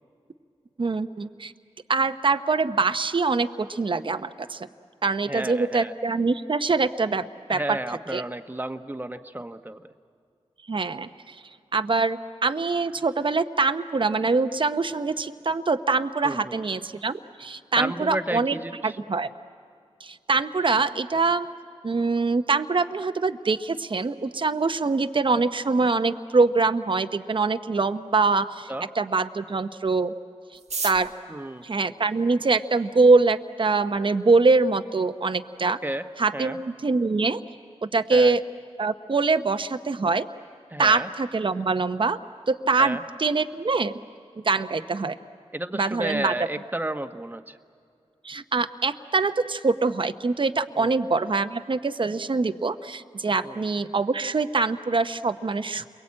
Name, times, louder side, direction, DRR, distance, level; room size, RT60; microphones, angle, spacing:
voice 1, 0.8-1.5 1.9-4.7 5.0-7.2 7.5-7.8 8.1-8.2 10.7-11.4 11.7-18.6 18.8-19.3 20.0-21.5 21.8-30.1 30.8-31.1 31.6-35.8 36.2-37.4 37.8-38.4 38.8-40.3 40.8-42.2 42.5-43.9 44.4-45.1 45.7-46.3 48.2-55.9, right 4 dB, 50° right, 9 dB, 0.9 m, -24 dB
voice 2, 5.2-5.9 7.5-9.8 16.2-16.7 17.8-19.0 28.7-28.8 31.3-31.6 35.8-36.1 36.3-36.6 38.1-38.3 40.7-41.1 42.8-43.0 45.5-47.6 50.7-51.0 53.4-53.6, right 1 dB, 15° right, 8 dB, 1.2 m, -32 dB
sound 1, 30.5-32.8 33.6-33.7 33.9-34.0 34.3-34.7 35.1-35.2 35.3-35.8 36.1-36.3 36.6-36.9, right 5 dB, 80° right, 1.3 m, -36 dB
29.5 x 22.5 x 8.7 m, 2.4 s
cardioid pair, 55°, 11 cm